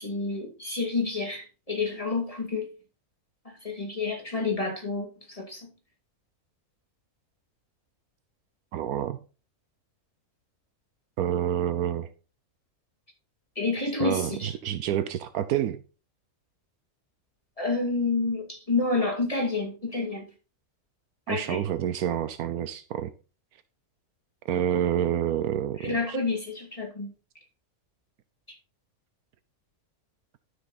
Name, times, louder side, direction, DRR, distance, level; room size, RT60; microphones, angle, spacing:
voice 1, 0.0-2.7 3.4-5.7 13.6-14.5 17.6-20.3 21.3-21.6 25.8-27.1 28.5-28.6, left 3 dB, 25° left, 2.8 m, -29 dB
voice 2, 8.7-9.2 11.2-12.1 14.0-15.8 21.3-23.1 24.5-26.2, right 10 dB, 85° right, 1.2 m, -28 dB
12.0 x 6.6 x 4.1 m
omnidirectional pair, 1.5 m